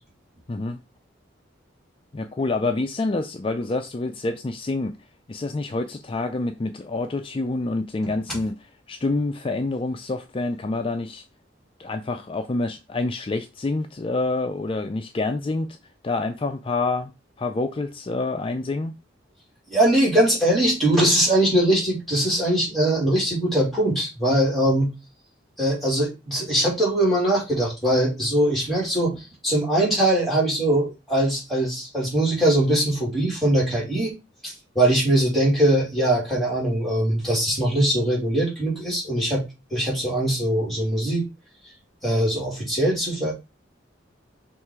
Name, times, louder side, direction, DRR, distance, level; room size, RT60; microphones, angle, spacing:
voice 1, 0.5-0.8 2.1-5.0 5.3-11.2 11.8-15.8 16.0-17.1 17.4-19.0, left 2 dB, 30° left, 0.4 m, -27 dB
voice 2, 19.7-24.9 25.6-34.1 34.4-39.4 39.7-41.3 42.0-43.3, right 1 dB, ahead, 3.1 m, -21 dB
6.3 x 3.2 x 4.7 m
head